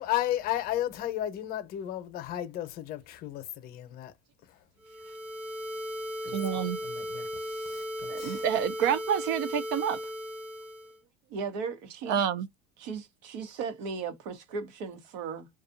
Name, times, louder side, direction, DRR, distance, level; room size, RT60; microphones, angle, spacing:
voice 1, 0.0-4.1 6.2-6.4 6.8-8.4, left 13 dB, 45° left, 0.7 m, -34 dB
sound 1, 4.8-11.0, equal, 25° right, 0.9 m, -37 dB
voice 2, 6.3-6.8 8.1-10.0 12.1-12.5, right 8 dB, 55° right, 0.4 m, -28 dB
voice 3, 11.3-12.2 12.8-15.5, right 5 dB, 80° right, 1.0 m, -36 dB
2.6 x 2.3 x 2.5 m
cardioid pair, 140°, 21 cm